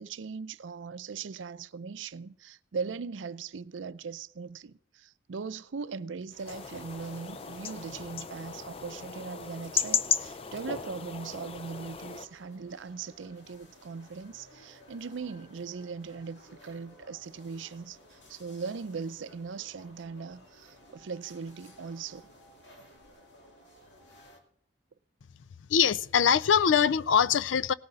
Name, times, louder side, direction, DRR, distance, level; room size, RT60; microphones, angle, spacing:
voice 1, 0.0-22.3, right 5 dB, 85° right, 0.5 m, -39 dB
sound 1, 6.3-24.4, left 1 dB, 70° left, 2.4 m, -56 dB
sound 2, 6.5-12.3, left 7 dB, 30° left, 0.4 m, -35 dB
voice 2, 25.7-27.7, left 7 dB, 90° left, 0.4 m, -23 dB
17.5 x 9.5 x 4.0 m
head